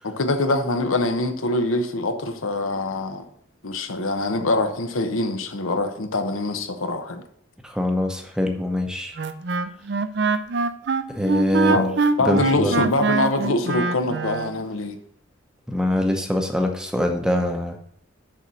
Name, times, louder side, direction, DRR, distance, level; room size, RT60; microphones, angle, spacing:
voice 1, 0.0-3.3 3.6-7.2 11.7-15.0, left 2 dB, 85° left, 1.0 m, -24 dB
voice 2, 7.6-9.1 11.1-11.8 12.2-12.8 15.7-17.8, left 1 dB, 5° right, 0.7 m, -23 dB
Wind instrument woodwind instrument, 9.2-14.5, right 4 dB, 55° right, 0.5 m, -24 dB
6.8 x 5.5 x 6.3 m
head